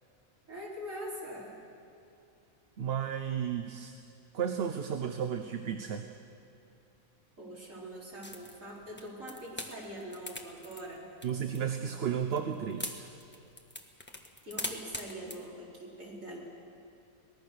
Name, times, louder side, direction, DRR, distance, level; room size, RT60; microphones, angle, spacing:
voice 1, 0.5-1.5 7.4-11.1 14.4-16.4, equal, 70° right, -5 dB, 5.0 m, -43 dB
voice 2, 2.8-4.0 4.3-6.1 11.2-13.1, right 8 dB, 50° right, 7 dB, 1.0 m, -33 dB
sound 1, 8.2-15.4, left 1 dB, 10° left, 1.3 m, -42 dB
23.5 x 19.0 x 6.6 m, 2.6 s
omnidirectional pair, 1.4 m